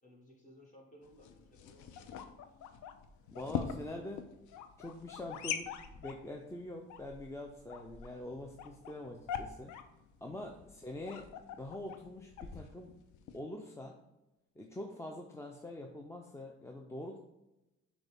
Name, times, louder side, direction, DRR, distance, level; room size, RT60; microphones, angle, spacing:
voice 1, 0.0-2.3 10.2-10.5, left 1 dB, 25° left, -2 dB, 1.5 m, -59 dB
sound 1, 1.0-13.4, left 8 dB, 75° left, 0.5 m, -44 dB
voice 2, 3.3-4.3 4.8-5.7 5.9-9.7 10.2-11.3 11.6-13.0 13.3-14.0 14.6-17.2, left 1 dB, 10° left, 2 dB, 0.4 m, -44 dB
6.2 x 2.3 x 3.4 m, 0.97 s
cardioid pair, 90°, 30 cm